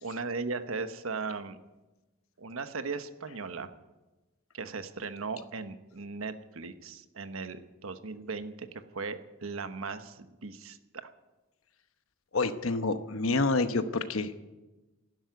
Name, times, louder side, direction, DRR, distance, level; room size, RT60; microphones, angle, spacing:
voice 1, 0.0-1.6 2.4-3.7 4.5-8.7 8.9-10.8 11.0-11.1, right 4 dB, 85° right, 10 dB, 1.1 m, -37 dB
voice 2, 12.3-14.3, left 3 dB, 75° left, 10 dB, 1.0 m, -28 dB
12.0 x 11.5 x 9.5 m, 1.1 s
head